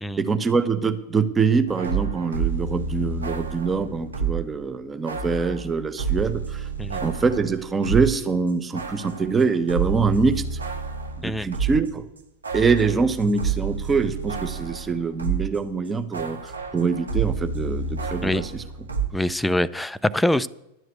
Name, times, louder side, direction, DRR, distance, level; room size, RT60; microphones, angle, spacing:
voice 1, 0.2-6.7 7.0-10.6 11.2-12.0 12.5-18.6, right 5 dB, 15° right, 11 dB, 1.0 m, -24 dB
sound 1, 1.7-4.5 5.1-8.2 8.5-15.6 15.9-19.1, right 5 dB, 75° right, 1.8 m, -29 dB
voice 2, 19.1-20.5, left 1 dB, 5° left, 16 dB, 0.5 m, -24 dB
11.5 x 7.8 x 8.1 m, 0.91 s
figure-of-eight pair, 90°, 0 cm